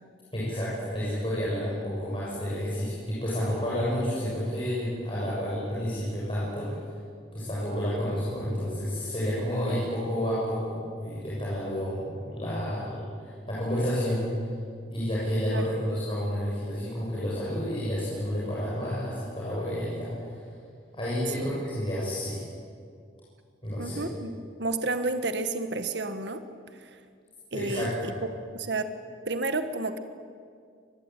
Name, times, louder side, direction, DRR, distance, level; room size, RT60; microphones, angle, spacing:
voice 1, 0.3-6.7 7.3-14.3 14.9-20.4 20.9-22.4 23.6-24.0 27.5-28.1, equal, 25° left, -8 dB, 7.0 m, -30 dB
voice 2, 23.8-24.3 24.6-26.4 26.8-26.9 27.5-28.1 28.5-28.9 29.3-30.0, right 3 dB, 65° right, 9 dB, 1.6 m, -30 dB
26.0 x 20.0 x 9.1 m, 2.2 s
head